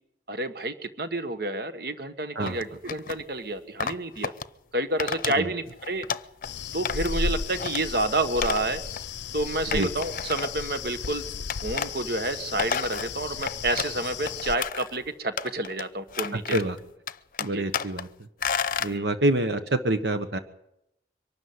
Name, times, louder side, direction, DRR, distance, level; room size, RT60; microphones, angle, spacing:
voice 1, 0.3-4.3 4.7-6.0 6.7-8.8 9.3-11.2 11.6-16.5 17.5-17.6 18.9-19.1, right 2 dB, 60° right, 10 dB, 1.5 m, -29 dB
sound 1, 2.4-3.2 3.8-4.4 5.0-5.4 5.7-6.5 6.8-7.2 7.5-7.8 8.4-8.6 8.9-9.0 9.7-10.8 11.5-11.9 12.3-14.0 14.3-15.0 15.4-15.8 16.1-16.8 17.1-18.0 18.4-18.9, left 6 dB, 50° left, 0.7 m, -31 dB
sound 2, 6.4-14.6, left 5 dB, 90° left, 0.7 m, -34 dB
voice 2, 17.4-18.1 18.8-20.4, right 1 dB, 75° right, 8 dB, 1.3 m, -26 dB
24.0 x 12.5 x 9.6 m, 0.81 s
head